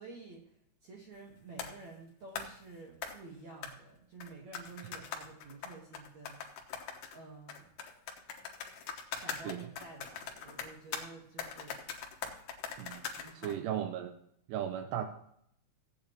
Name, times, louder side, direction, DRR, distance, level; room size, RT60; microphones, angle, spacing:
voice 1, 0.0-6.6 7.1-7.7 9.1-11.9 13.1-13.6, right 3 dB, 60° right, -1 dB, 2.0 m, -51 dB
sound 1, 1.6-1.8 2.4-2.6 3.0-3.2 3.6-3.7 4.2-7.2 7.5-11.1 11.4-13.5, left 7 dB, 65° left, 2.2 m, -42 dB
voice 2, 13.3-14.1 14.5-15.1, right 10 dB, 85° right, 7 dB, 2.7 m, -36 dB
16.0 x 8.7 x 2.9 m, 0.70 s
omnidirectional pair, 5.1 m